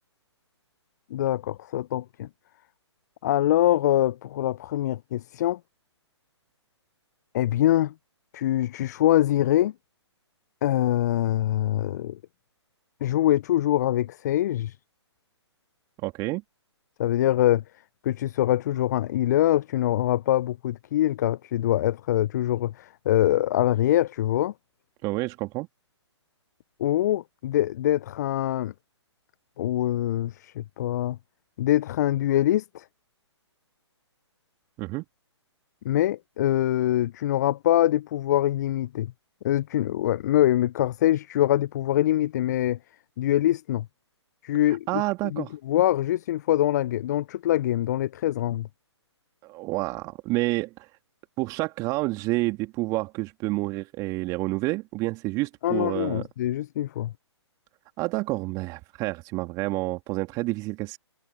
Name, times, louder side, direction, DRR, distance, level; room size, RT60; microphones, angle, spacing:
voice 1, 1.1-2.3 3.2-5.6 7.3-7.9 8.3-9.7 10.6-12.2 13.0-14.8 17.0-17.6 18.0-24.5 26.8-28.7 29.6-31.2 31.6-32.8 35.8-39.1 39.4-42.8 43.2-43.9 44.4-45.0 45.3-48.7 55.6-57.1, left 13 dB, 35° left, 0.5 m, -24 dB
voice 2, 16.0-16.4 25.0-25.7 34.8-35.0 44.9-45.5 49.4-50.9 51.4-56.2 58.0-61.0, right 22 dB, 25° right, 2.1 m, -29 dB
figure-of-eight pair, 130°, 15 cm